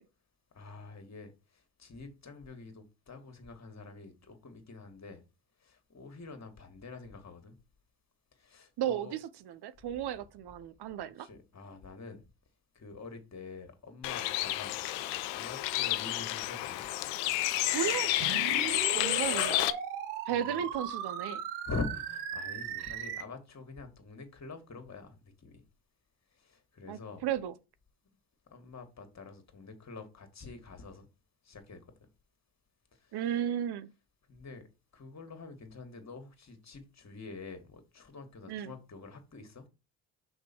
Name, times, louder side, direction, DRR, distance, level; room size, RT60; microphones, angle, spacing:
voice 1, 0.5-5.2 5.6-7.6 8.4-9.1 11.0-12.2 12.7-14.8 15.3-16.8 20.3-20.6 21.7-25.6 26.3-27.3 28.5-31.1 31.4-31.9 33.0-33.2 34.3-34.7 34.9-39.6, left 3 dB, 35° left, 2.4 m, -45 dB
voice 2, 8.8-11.3 17.7-18.1 18.9-19.6 20.3-21.4 22.8-22.9 26.9-27.5 33.1-33.9 38.5-38.7, right 10 dB, 55° right, 0.9 m, -34 dB
Bird, 14.0-19.7, left 15 dB, 75° left, 0.8 m, -30 dB
sound 1, 18.2-23.2, right 7 dB, 80° right, 1.2 m, -38 dB
6.1 x 5.2 x 4.5 m
hypercardioid pair, 50°, 46 cm